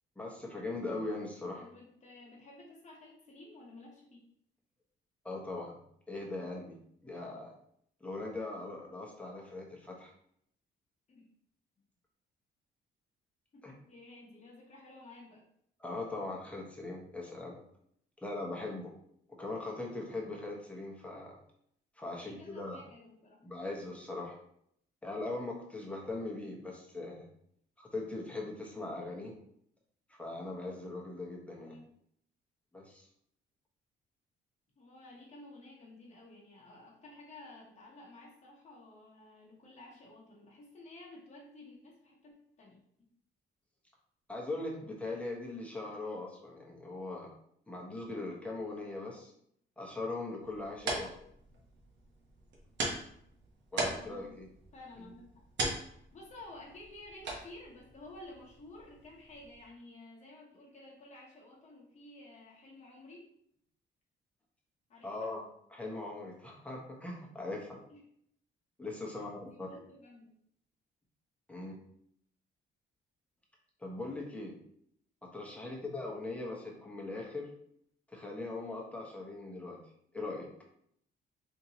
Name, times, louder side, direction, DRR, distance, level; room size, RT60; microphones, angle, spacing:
voice 1, 0.2-1.7 5.2-5.8 6.1-6.8 7.0-7.5 8.0-10.1 13.6-13.7 15.8-17.6 18.2-18.9 19.3-21.4 22.0-22.8 23.4-24.4 25.0-27.3 27.8-29.3 30.1-31.7 32.7-33.0 44.3-47.3 47.7-49.3 49.8-51.1 53.7-54.5 65.0-65.4 65.7-67.8 68.8-69.7 71.5-71.7 73.8-74.5 75.2-77.5 78.1-79.8 80.1-80.5, left 2 dB, 5° left, -2 dB, 1.0 m, -40 dB
voice 2, 1.6-4.2 11.1-11.3 13.5-15.4 22.0-23.4 31.6-31.9 34.8-43.1 54.0-54.3 54.7-55.4 55.9-63.2 64.9-65.3 67.9-68.0 69.1-70.4 75.5-75.8, left 2 dB, 35° left, -4 dB, 1.0 m, -53 dB
sound 1, 50.4-59.7, right 2 dB, 65° right, 0.9 m, -41 dB
3.6 x 2.8 x 2.8 m, 0.69 s
cardioid pair, 90°, 20 cm